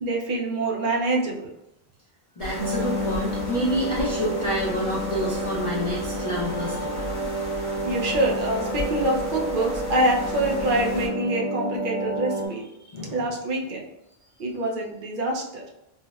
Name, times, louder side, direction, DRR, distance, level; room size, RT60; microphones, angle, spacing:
voice 1, 0.0-1.5 7.8-12.6 13.1-13.8 14.4-15.6, right 1 dB, 60° right, 0 dB, 0.7 m, -25 dB
voice 2, 2.4-7.0 12.8-13.3, equal, 50° left, -7 dB, 0.4 m, -28 dB
sound 1, 2.4-11.1, left 1 dB, 25° left, 0.7 m, -35 dB
sound 2, 2.6-12.5, right 1 dB, 80° left, 0.9 m, -30 dB
3.3 x 2.1 x 2.2 m, 0.89 s
omnidirectional pair, 1.1 m